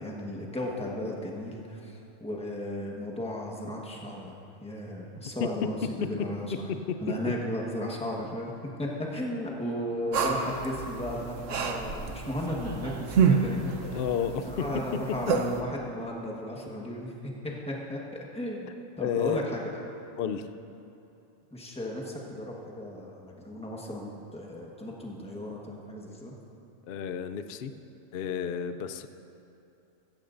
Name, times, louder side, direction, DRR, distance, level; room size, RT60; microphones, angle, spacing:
voice 1, 0.0-6.6 7.0-8.5 8.8-14.0 14.4-19.7 20.2-20.3 21.5-26.3, left 1 dB, 5° left, -2 dB, 1.2 m, -35 dB
sound 1, 10.1-15.6, right 6 dB, 75° right, 1.2 m, -29 dB
voice 2, 13.8-14.7 19.0-19.4 20.2-20.5 26.9-27.7 28.1-29.1, left 8 dB, 60° left, 9 dB, 0.6 m, -31 dB
15.5 x 14.5 x 2.6 m, 2.8 s
omnidirectional pair, 1.3 m